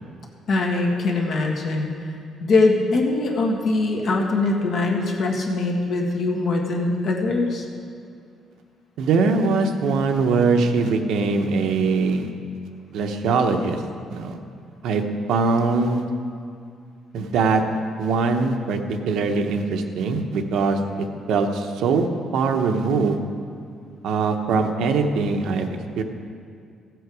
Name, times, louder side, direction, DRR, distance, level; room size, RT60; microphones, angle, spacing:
voice 1, 0.5-1.9 2.4-7.6, left 3 dB, 50° left, 0 dB, 1.7 m, -22 dB
voice 2, 9.0-12.3 12.9-13.8 14.1-14.4 14.8-15.0 15.3-16.0 17.1-17.6 18.0-18.8 19.1-22.1 22.3-23.2 24.0-25.7 26.0-26.1, right 4 dB, 75° right, 5 dB, 0.9 m, -22 dB
15.5 x 7.9 x 4.8 m, 2.3 s
cardioid pair, 155°, 0 cm